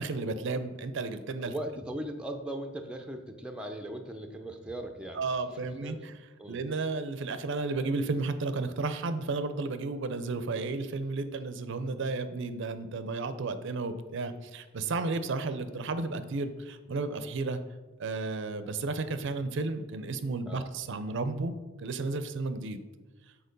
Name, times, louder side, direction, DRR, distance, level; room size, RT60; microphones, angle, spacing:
voice 1, 0.0-1.5 5.1-6.1 6.5-17.6 18.0-21.5 21.8-22.8, right 3 dB, 60° right, 10 dB, 0.5 m, -33 dB
voice 2, 1.4-5.2 5.8-6.0 6.4-6.6 20.4-20.7, right 1 dB, 5° right, 4 dB, 0.5 m, -38 dB
6.6 x 4.3 x 5.2 m, 1.2 s
head